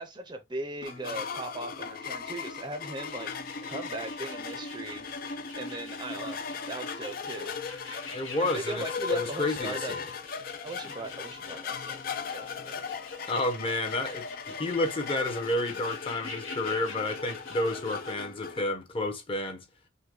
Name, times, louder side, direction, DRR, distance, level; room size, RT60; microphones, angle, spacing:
voice 1, 0.0-3.3 3.6-5.1 5.5-6.4 6.7-7.6 8.4-9.9 10.6-12.9 13.1-13.3, right 2 dB, 20° right, 0.6 m, -39 dB
sound 1, 0.8-18.6, left 5 dB, 45° left, 0.4 m, -38 dB
sound 2, 3.0-18.2, left 4 dB, 80° left, 1.7 m, -47 dB
voice 2, 8.1-10.1 13.3-19.6, left 2 dB, 25° left, 0.9 m, -31 dB
5.6 x 2.2 x 3.7 m
head